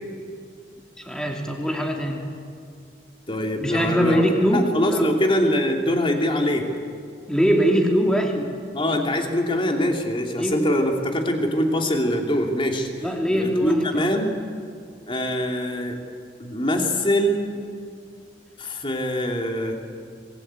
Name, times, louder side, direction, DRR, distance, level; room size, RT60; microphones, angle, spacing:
voice 1, 1.0-2.2 3.6-5.0 7.3-8.3 10.4-10.5 13.0-14.1, equal, 5° left, 1 dB, 3.0 m, -22 dB
voice 2, 3.3-4.2 4.5-6.7 8.3-8.4 8.7-13.1 13.3-14.4 15.1-16.0 16.4-17.6 18.6-19.7, equal, 30° left, 3 dB, 2.8 m, -23 dB
25.5 x 20.0 x 9.0 m, 2.2 s
head